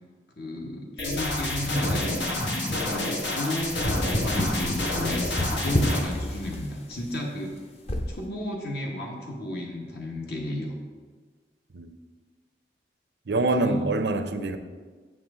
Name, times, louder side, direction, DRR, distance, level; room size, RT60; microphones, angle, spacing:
voice 1, 0.4-2.2 2.6-7.6 8.1-10.7 13.4-13.9, left 1 dB, 65° left, -1 dB, 1.1 m, -33 dB
sound 1, 1.0-6.0, left 1 dB, 85° left, 1.5 m, -29 dB
sound 2, 1.6-7.0 7.9-8.2, equal, 35° left, 0.7 m, -30 dB
voice 2, 13.3-14.6, right 2 dB, 80° right, 8 dB, 0.6 m, -25 dB
7.9 x 7.5 x 3.6 m, 1.5 s
head